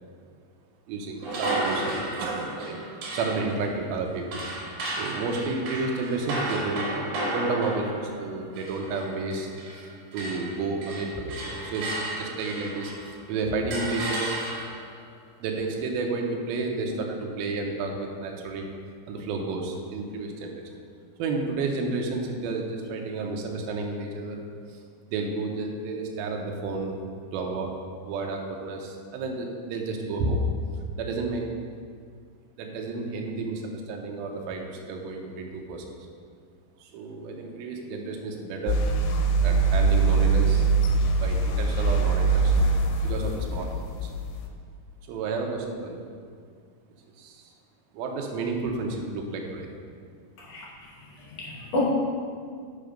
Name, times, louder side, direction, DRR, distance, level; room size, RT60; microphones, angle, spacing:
voice 1, 0.9-1.9 2.2-2.8 3.1-4.4 5.0-14.3 15.4-18.7 19.1-20.5 21.2-24.4 24.7-24.8 25.1-27.0 27.3-27.7 28.1-30.5 31.0-31.5 32.6-35.9 36.8-40.7 41.1-42.7 43.0-44.1 45.1-46.1 47.2-47.5 47.9-49.7, right 3 dB, 75° right, 1 dB, 2.5 m, -31 dB
sound 1, 1.2-9.9 10.1-13.2 13.7-14.9, right 2 dB, 60° right, 2.6 m, -33 dB
sound 2, 38.7-44.5, right 4 dB, 80° left, 2.6 m, -23 dB
voice 2, 50.4-51.8, left 2 dB, 65° left, -4 dB, 2.2 m, -32 dB
6.5 x 5.7 x 5.1 m, 2.1 s
omnidirectional pair, 4.7 m